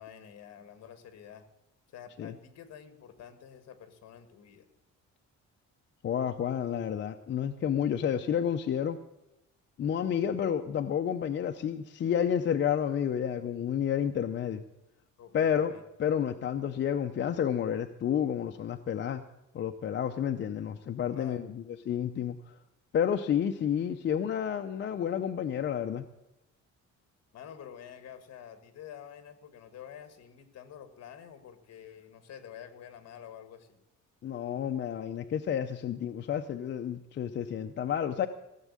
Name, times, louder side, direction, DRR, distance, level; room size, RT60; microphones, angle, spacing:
voice 1, 0.0-1.4 1.9-4.7 15.2-15.8 21.1-21.4 27.3-33.8, left 9 dB, 55° left, 10 dB, 1.6 m, -48 dB
voice 2, 6.0-9.0 9.8-14.6 15.3-15.7 16.0-19.2 19.5-22.4 22.9-26.0 34.2-38.3, left 8 dB, 40° left, 6 dB, 0.6 m, -30 dB
16.0 x 7.3 x 8.3 m, 0.91 s
cardioid pair, 170°, 30 cm